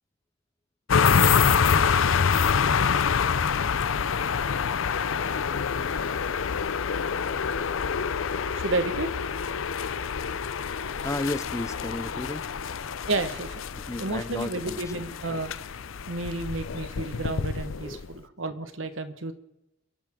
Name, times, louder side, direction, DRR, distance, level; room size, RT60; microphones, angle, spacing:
sound 1, 0.9-18.1, left 6 dB, 85° left, 0.6 m, -26 dB
voice 1, 8.5-9.1 13.1-13.6 14.0-15.5 16.1-19.3, right 2 dB, 75° right, 1.4 m, -31 dB
voice 2, 11.0-12.5 13.7-14.8 17.8-18.0, left 2 dB, 15° left, 0.5 m, -33 dB
28.5 x 11.5 x 3.8 m
head